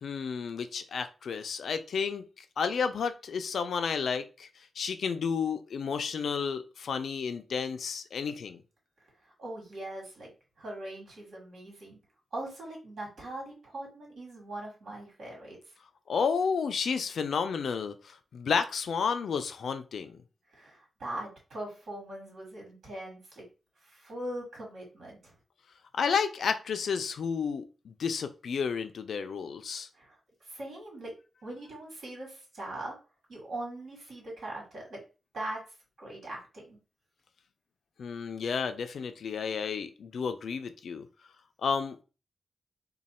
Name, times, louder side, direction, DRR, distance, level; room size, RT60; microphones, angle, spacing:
voice 1, 0.0-4.5 4.8-8.6 16.1-20.2 25.9-29.9 38.0-41.1 41.6-42.0, left 6 dB, 65° left, 0.4 m, -31 dB
voice 2, 9.4-10.3 10.6-12.0 12.3-15.6 20.5-23.5 23.8-25.3 29.9-30.2 30.4-31.1 31.4-33.0 33.3-35.0 35.3-35.6 36.0-36.8, right 1 dB, 60° right, 2.0 m, -41 dB
3.1 x 2.2 x 4.2 m
wide cardioid pair, 175°, 0 cm